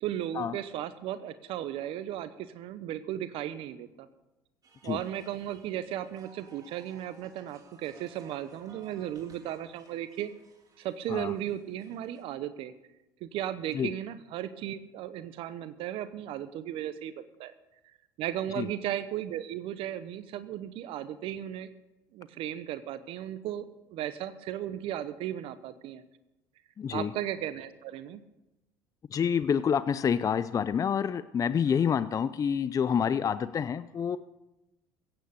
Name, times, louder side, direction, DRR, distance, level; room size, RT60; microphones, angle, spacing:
voice 1, 0.0-4.1 4.8-10.3 10.8-12.7 13.2-17.5 18.2-21.7 22.1-26.0 26.9-28.2, right 11 dB, 65° right, 12 dB, 0.8 m, -36 dB
sound 1, 4.6-12.2, right 4 dB, 40° right, 3.5 m, -59 dB
voice 2, 26.8-27.1 29.1-34.2, left 7 dB, 35° left, 15 dB, 0.5 m, -28 dB
16.0 x 9.0 x 6.9 m, 0.99 s
supercardioid pair, 75°, 10 cm